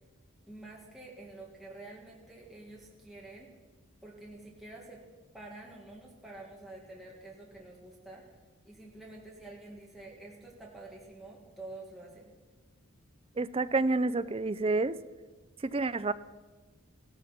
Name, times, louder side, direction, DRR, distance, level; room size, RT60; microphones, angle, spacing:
voice 1, 0.4-3.5 4.0-5.0 5.3-8.2 8.7-12.3, right 2 dB, ahead, -4 dB, 2.1 m, -48 dB
voice 2, 13.4-15.0 15.6-16.1, right 3 dB, 25° right, 14 dB, 0.4 m, -29 dB
16.5 x 13.5 x 5.9 m, 1.3 s
head